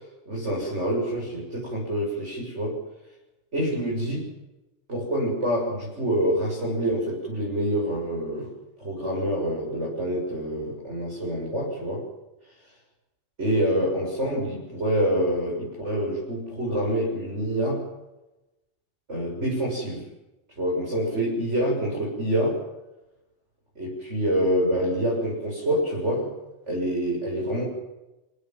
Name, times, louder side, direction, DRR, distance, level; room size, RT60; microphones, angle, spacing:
voice 1, 0.3-2.8 3.5-4.3 4.9-8.5 8.8-12.1 13.4-17.8 19.1-20.1 20.6-22.6 23.8-26.3 26.7-27.6, equal, 85° right, -4 dB, 7.8 m, -26 dB
28.5 x 18.0 x 7.7 m, 1.0 s
omnidirectional pair, 1.2 m